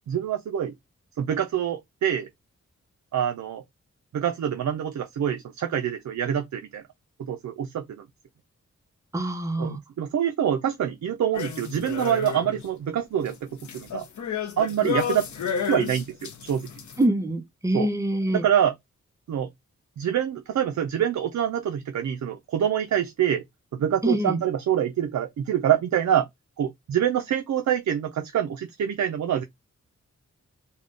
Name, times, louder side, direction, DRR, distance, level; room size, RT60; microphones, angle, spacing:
voice 1, 0.1-0.7 1.2-2.3 3.1-3.6 4.1-6.8 7.2-8.0 9.6-13.5 13.7-14.1 14.6-15.3 15.7-16.7 17.7-17.9 18.3-18.8 19.3-19.5 20.0-23.4 23.7-26.3 26.6-29.4, right 9 dB, 75° right, 0.5 m, -25 dB
voice 2, 9.1-9.8 17.0-18.4 24.0-24.4, right 1 dB, 10° right, 0.6 m, -25 dB
sound 1, 11.3-12.7 13.0-17.0, left 8 dB, 80° left, 0.7 m, -32 dB
3.6 x 2.2 x 3.6 m
wide cardioid pair, 155°, 29 cm